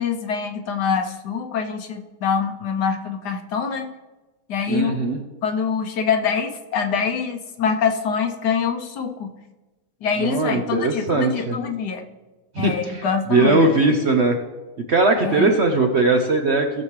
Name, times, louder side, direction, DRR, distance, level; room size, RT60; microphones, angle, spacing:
voice 1, 0.0-3.9 4.5-5.0 5.4-9.3 10.0-12.0 12.6-13.6 15.2-15.6, left 6 dB, 70° left, 5 dB, 1.4 m, -24 dB
voice 2, 4.7-5.2 10.2-11.6 12.5-14.4 14.9-16.8, right 3 dB, 55° right, 4 dB, 0.8 m, -20 dB
17.5 x 7.2 x 3.2 m, 1.2 s
omnidirectional pair, 1.9 m